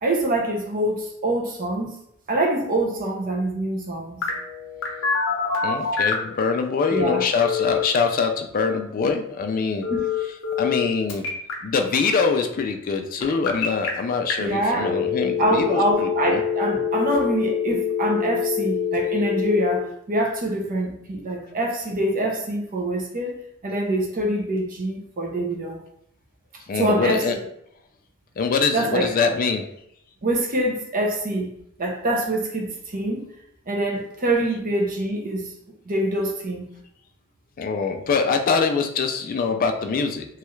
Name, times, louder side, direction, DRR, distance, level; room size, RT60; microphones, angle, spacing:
voice 1, 0.0-1.9 2.3-4.2 6.9-7.2 9.9-10.0 14.4-14.9 15.4-23.4 23.6-25.8 26.7-27.2 28.7-29.1 30.2-31.5 31.8-33.2 33.7-35.5 35.9-36.7, right 1 dB, 40° right, 0 dB, 0.6 m, -25 dB
Telephone, 4.2-6.3 6.8-7.8 9.8-10.8 11.1-11.5 13.2-13.9 14.3-14.4 14.7-19.8, left 7 dB, 60° left, 0.8 m, -25 dB
voice 2, 5.6-9.9 10.6-11.3 11.6-16.4 26.7-27.3 28.4-29.6 37.6-40.3, left 5 dB, 40° left, 5 dB, 0.3 m, -24 dB
3.1 x 2.3 x 3.0 m, 0.74 s
head